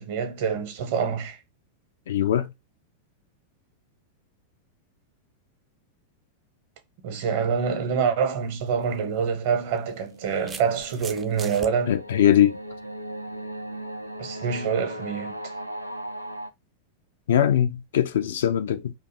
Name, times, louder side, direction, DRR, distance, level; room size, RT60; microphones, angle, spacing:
voice 1, 0.0-1.4 7.0-12.0 14.2-15.4, right 6 dB, 50° right, 0.7 m, -26 dB
voice 2, 2.1-2.5 11.9-12.6 17.3-18.9, left 10 dB, 60° left, 0.4 m, -21 dB
sound 1, 8.5-8.7 9.8-11.7, right 5 dB, 20° right, 0.4 m, -40 dB
sound 2, 9.8-16.5, right 1 dB, 90° right, 0.3 m, -38 dB
2.5 x 2.3 x 3.9 m
figure-of-eight pair, 90°, 0 cm